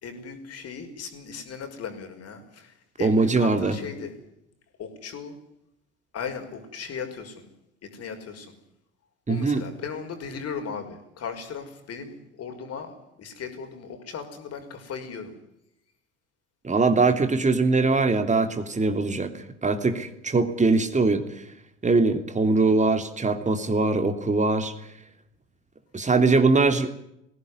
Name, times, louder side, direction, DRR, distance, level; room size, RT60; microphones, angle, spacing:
voice 1, 0.0-4.1 4.8-5.3 6.1-7.5 7.8-8.6 9.3-15.4, left 6 dB, 45° left, 5 dB, 5.7 m, -37 dB
voice 2, 3.0-3.8 9.3-9.6 16.6-21.4 21.8-24.7 25.9-26.9, right 3 dB, 20° right, 8 dB, 3.3 m, -22 dB
20.0 x 17.5 x 9.8 m, 0.79 s
figure-of-eight pair, 65°, 35 cm